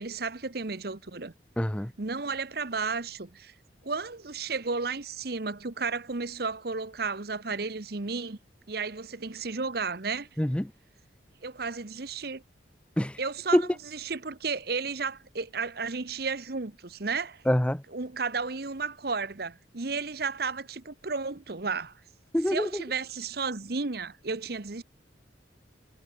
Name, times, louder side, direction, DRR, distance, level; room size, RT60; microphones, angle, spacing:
voice 1, 0.0-1.3 2.0-3.5 3.8-8.4 8.7-10.3 11.4-12.4 13.2-17.4 17.9-21.9 22.5-24.8, right 4 dB, 55° right, 1.1 m, -33 dB
voice 2, 1.6-1.9 10.4-10.7 13.0-13.2 13.5-13.6 17.5-17.8 22.3-22.8, equal, 5° left, 0.5 m, -25 dB
head